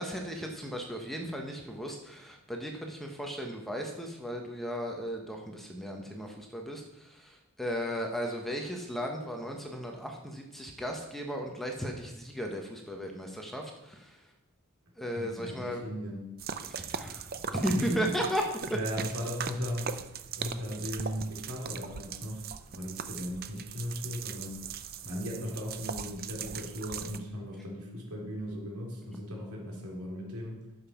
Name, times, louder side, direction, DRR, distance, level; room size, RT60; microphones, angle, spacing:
voice 1, 0.0-14.2 15.0-15.8 16.6-17.3 17.5-18.4, equal, ahead, 1 dB, 1.1 m, -35 dB
voice 2, 15.1-16.2 17.7-18.2 18.7-20.1 20.3-22.5 22.7-24.6 25.0-30.6, equal, 80° right, -2 dB, 3.5 m, -37 dB
sound 1, 16.4-27.2, right 7 dB, 40° right, 0.6 m, -40 dB
11.0 x 7.2 x 5.8 m, 0.91 s
head